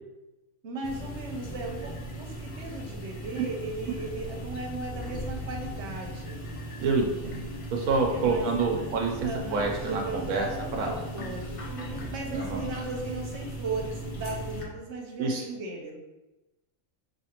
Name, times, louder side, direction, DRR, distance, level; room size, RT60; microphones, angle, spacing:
voice 1, 0.6-6.4 8.1-8.9 9.2-16.0, right 2 dB, 60° right, 1 dB, 1.0 m, -37 dB
sound 1, 0.8-14.6, equal, 40° left, 0.5 m, -38 dB
voice 2, 6.8-10.5 10.8-10.9 12.3-12.6 15.2-15.4, right 4 dB, 85° right, 0 dB, 1.0 m, -27 dB
4.9 x 2.7 x 2.8 m, 1.0 s
omnidirectional pair, 1.4 m